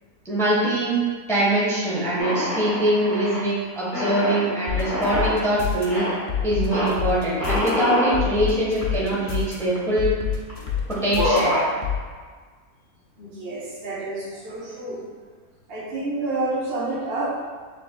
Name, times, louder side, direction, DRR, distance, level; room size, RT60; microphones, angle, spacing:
voice 1, 0.2-1.0 1.3-6.0 6.4-10.1 10.9-11.6, right 1 dB, ahead, -7 dB, 0.9 m, -23 dB
sound 1, 2.2-3.5 3.9-5.4 5.9-6.2 6.7-6.9 7.4-8.2 8.8-8.9 9.1-9.9 10.5-10.7 11.0-11.7, equal, 35° left, 1.4 m, -25 dB
sound 2, 4.7-5.9 6.3-7.7 8.1-9.5 10.0-11.4 11.8-12.0, left 9 dB, 65° left, 1.1 m, -26 dB
voice 2, 13.2-15.0 15.7-17.5, right 2 dB, 45° right, -10 dB, 1.1 m, -29 dB
6.8 x 3.4 x 2.2 m, 1.5 s
omnidirectional pair, 1.6 m